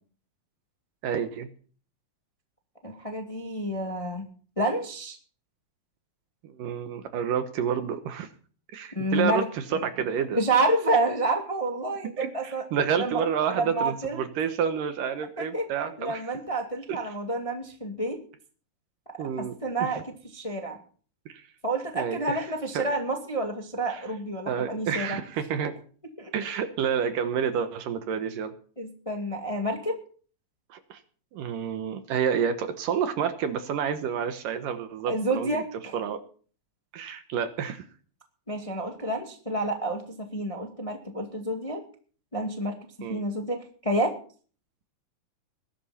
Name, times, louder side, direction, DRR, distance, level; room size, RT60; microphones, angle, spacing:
voice 1, 1.0-1.5 6.4-8.3 8.7-10.4 12.2-16.2 16.9-17.0 19.2-19.5 19.8-20.0 21.3-21.4 22.0-22.5 22.7-22.9 23.9-24.0 24.5-25.8 26.3-28.5 30.7-31.0 31.3-35.6 35.9-36.2 36.9-37.8 43.0-43.2, right 7 dB, 70° right, 9 dB, 2.6 m, -29 dB
voice 2, 2.8-4.2 4.6-5.2 8.9-9.8 10.3-12.6 13.0-13.2 13.5-14.2 15.4-15.6 16.0-18.2 19.4-20.8 21.6-25.2 26.2-26.3 28.8-29.9 35.1-35.9 38.5-41.8 42.3-44.1, right 2 dB, 15° left, 3 dB, 1.5 m, -29 dB
21.0 x 11.5 x 4.3 m, 0.42 s
omnidirectional pair, 4.3 m